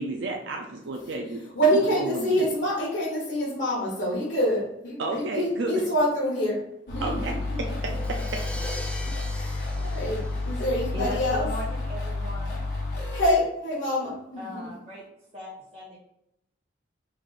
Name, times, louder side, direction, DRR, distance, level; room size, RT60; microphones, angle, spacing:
voice 1, 0.0-1.4 1.9-2.5 5.0-5.7 7.0-7.3, right 2 dB, 75° right, 1 dB, 0.4 m, -31 dB
voice 2, 1.5-7.3 7.6-7.7 9.0-11.5 13.0-14.7, equal, 75° left, -6 dB, 1.0 m, -26 dB
sound 1, 6.9-13.3, left 2 dB, 60° left, 1.2 m, -31 dB
Crash cymbal, 7.7-11.5, left 1 dB, 5° left, 0.3 m, -41 dB
voice 3, 10.9-12.6 14.4-15.0 15.3-16.0, left 1 dB, 35° right, -7 dB, 0.9 m, -37 dB
3.3 x 2.4 x 3.9 m, 0.79 s
head